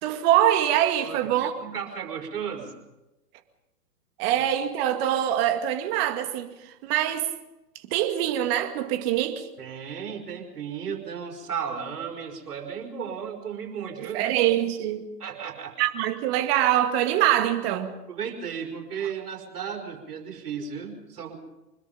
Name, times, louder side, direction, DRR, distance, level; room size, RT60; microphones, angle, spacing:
voice 1, 0.0-1.5 4.2-6.5 6.8-7.3 7.9-9.5 14.0-15.1 15.8-18.0, right 12 dB, 40° right, 2.2 m, -24 dB
voice 2, 1.0-2.7 4.3-4.4 9.6-14.3 15.2-15.8 18.1-21.4, right 7 dB, 70° right, 5.3 m, -35 dB
25.0 x 21.5 x 5.3 m
hypercardioid pair, 125°, 48 cm